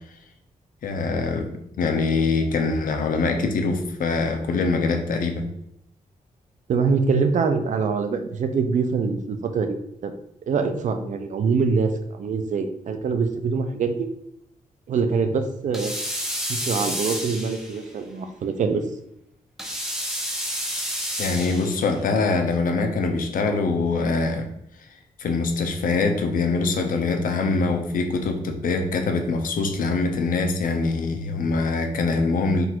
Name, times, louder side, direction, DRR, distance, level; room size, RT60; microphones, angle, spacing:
voice 1, 0.8-1.5 1.8-5.5 21.2-24.5 25.2-32.7, left 3 dB, 70° left, 5 dB, 0.6 m, -23 dB
voice 2, 6.7-9.8 10.0-10.1 10.5-14.1 14.9-15.9 16.5-18.8, right 5 dB, 60° right, 8 dB, 0.5 m, -24 dB
sound 1, 15.7-17.9 19.6-21.9, equal, 5° right, 0.7 m, -30 dB
3.9 x 2.5 x 4.4 m, 0.77 s
wide cardioid pair, 130°, 14 cm